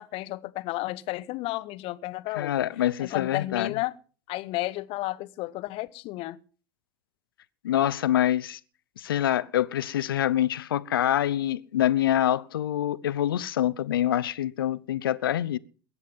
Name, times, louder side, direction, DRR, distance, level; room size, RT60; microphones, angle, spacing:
voice 1, 0.0-2.6 3.0-3.9 4.3-6.4, left 18 dB, 55° left, 1.0 m, -32 dB
voice 2, 2.4-3.7 7.6-8.6 9.0-15.6, left 12 dB, 80° left, 0.8 m, -25 dB
21.5 x 9.6 x 5.4 m
hypercardioid pair, 85°, 12 cm